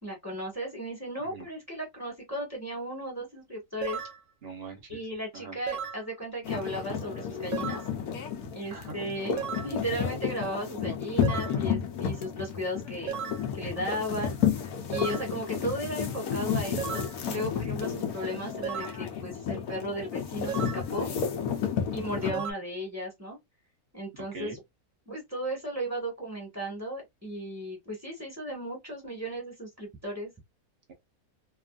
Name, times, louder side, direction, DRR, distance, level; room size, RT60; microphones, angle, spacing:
voice 1, 0.0-4.0 4.9-7.8 8.5-13.2 13.5-21.1 21.9-23.4 23.9-24.6 25.0-30.3, equal, 10° right, 1.5 m, -35 dB
sound 1, 3.8-4.2 5.7-6.0 7.5-7.9 9.4-9.7 11.2-11.6 13.1-13.5 14.9-15.3 16.8-17.2 18.6-19.0 20.5-20.9 22.3-22.5, right 7 dB, 70° right, 0.9 m, -35 dB
voice 2, 4.4-5.0 5.3-5.6 8.7-9.0 22.2-22.4 24.2-24.6, right 4 dB, 45° right, 1.1 m, -41 dB
sound 2, 6.4-22.3, left 7 dB, 80° left, 1.2 m, -32 dB
2.9 x 2.5 x 2.4 m
omnidirectional pair, 1.6 m